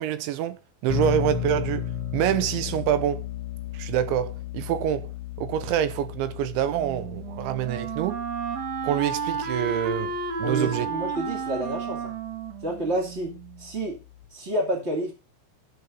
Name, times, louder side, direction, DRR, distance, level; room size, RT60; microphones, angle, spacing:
voice 1, 0.0-3.3 3.7-5.1 5.4-8.2 8.8-10.1 10.4-10.9, right 11 dB, 80° right, 2.9 m, -26 dB
sound 1, 0.9-14.3, left 9 dB, 35° left, 3.5 m, -36 dB
Wind instrument woodwind instrument, 6.7-13.6, right 5 dB, 50° right, 2.2 m, -32 dB
voice 2, 10.4-12.1 12.6-14.0 14.3-15.1, right 1 dB, 35° right, 1.0 m, -29 dB
12.0 x 7.2 x 5.3 m
omnidirectional pair, 5.8 m